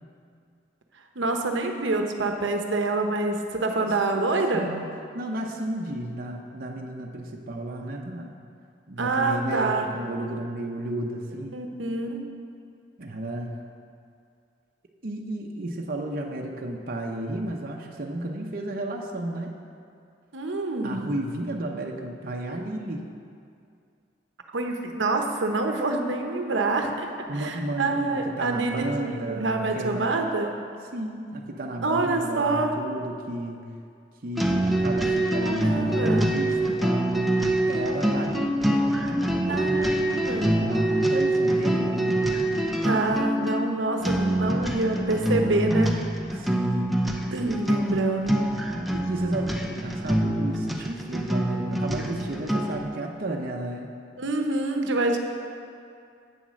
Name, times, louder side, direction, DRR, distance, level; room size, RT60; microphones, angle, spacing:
voice 1, 1.2-4.7 9.0-9.8 11.5-12.2 20.3-21.1 24.5-30.5 31.8-32.7 35.4-36.3 39.5-40.7 42.8-46.0 47.3-48.4 54.2-55.2, right 2 dB, 85° right, 4 dB, 0.9 m, -26 dB
voice 2, 3.8-4.9 5.1-8.3 8.9-11.6 13.0-13.6 15.0-19.6 20.8-23.0 27.3-30.1 30.9-33.6 34.2-37.2 37.7-39.6 40.5-42.0 46.4-47.1 48.9-53.9, right 1 dB, 55° right, 0 dB, 0.7 m, -33 dB
sound 1, 34.4-52.9, right 1 dB, ahead, 0.6 m, -25 dB
8.7 x 7.2 x 6.3 m, 2.4 s
head